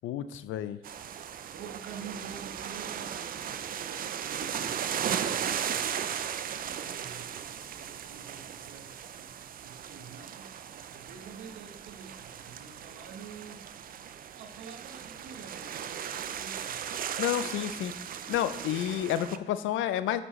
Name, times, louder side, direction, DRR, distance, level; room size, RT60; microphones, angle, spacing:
voice 1, 0.0-0.8 17.2-17.9 18.3-20.2, left 11 dB, 80° left, 13 dB, 0.5 m, -30 dB
sound 1, 0.8-19.4, right 8 dB, 45° right, 0.4 m, -37 dB
voice 2, 1.5-5.9 6.5-14.0 14.3-16.8, right 6 dB, 85° right, 4 dB, 1.0 m, -48 dB
7.8 x 6.1 x 3.1 m, 0.98 s
cardioid pair, 90°, 20 cm